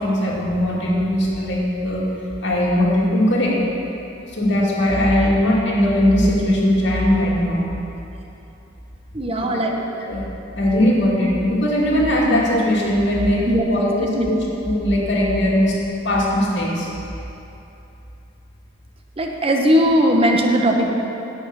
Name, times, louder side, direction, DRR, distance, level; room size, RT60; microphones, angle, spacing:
voice 1, 0.0-2.0 2.4-3.6 4.2-7.7 9.5-9.6 10.1-10.2 10.6-15.8 16.0-16.9, left 1 dB, 65° left, -5 dB, 2.4 m, -19 dB
voice 2, 9.1-9.8 13.5-14.3 19.2-21.0, equal, 30° right, 2 dB, 1.0 m, -19 dB
10.5 x 5.6 x 8.0 m, 2.9 s
head